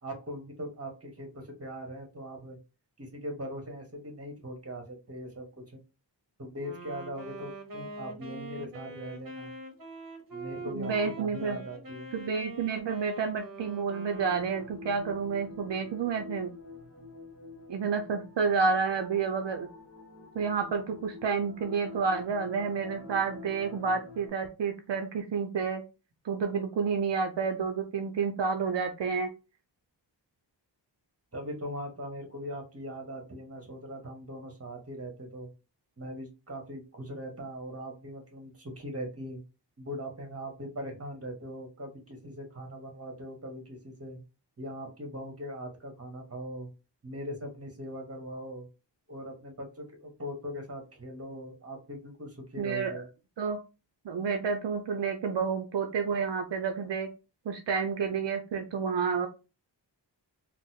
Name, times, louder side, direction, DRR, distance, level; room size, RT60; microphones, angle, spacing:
voice 1, 0.0-2.6 3.0-5.8 6.4-9.5 10.3-12.1 31.3-35.5 36.0-39.4 39.8-44.2 44.6-46.7 47.0-48.7 49.1-53.1, equal, 35° right, 3 dB, 1.2 m, -40 dB
Wind instrument woodwind instrument, 6.6-14.9, right 2 dB, 50° right, 0.9 m, -44 dB
voice 2, 10.7-11.6 12.1-16.5 17.7-19.7 20.4-25.8 26.2-29.3 52.6-53.0 53.4-53.6 54.0-57.1 57.5-59.3, right 5 dB, 70° right, 5 dB, 0.6 m, -30 dB
sound 1, 14.1-24.3, left 4 dB, 30° left, 1.1 m, -47 dB
3.8 x 2.1 x 2.7 m, 0.29 s
wide cardioid pair, 60°, 44 cm